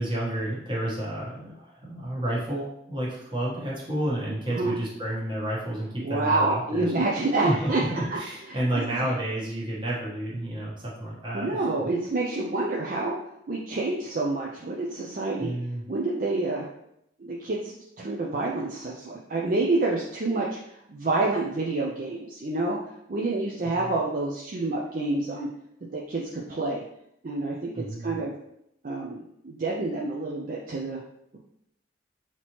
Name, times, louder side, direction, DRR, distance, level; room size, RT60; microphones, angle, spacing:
voice 1, 0.0-6.8 7.4-11.6 15.4-15.9 23.7-23.9 27.7-28.2, right 1 dB, 25° right, -5 dB, 1.3 m, -30 dB
voice 2, 6.0-7.8 8.1-8.2 8.7-9.1 11.3-13.2 13.5-15.5 15.9-16.7 17.2-20.6 20.9-22.8 23.1-25.5 25.9-26.8 27.2-28.4 28.8-31.0, right 2 dB, 45° right, -3 dB, 0.5 m, -28 dB
5.9 x 2.9 x 3.0 m, 0.78 s
head